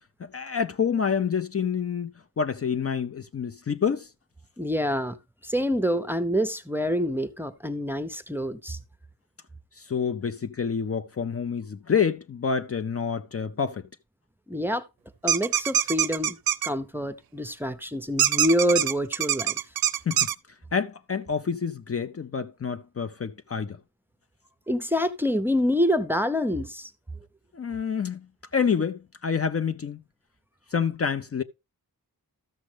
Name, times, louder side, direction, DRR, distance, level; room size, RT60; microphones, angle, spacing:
voice 1, 0.2-4.1 9.8-13.9 20.1-20.3 20.7-23.8 27.5-30.0 30.7-31.4, left 6 dB, 40° left, 0.5 m, -28 dB
voice 2, 4.6-5.2 5.4-8.8 14.5-14.8 15.2-16.4 16.6-19.6 24.7-26.9, equal, 5° right, 0.6 m, -26 dB
sound 1, 15.3-16.7 18.2-20.3, right 10 dB, 75° right, 0.5 m, -24 dB
13.5 x 6.4 x 3.3 m
wide cardioid pair, 125°, 36 cm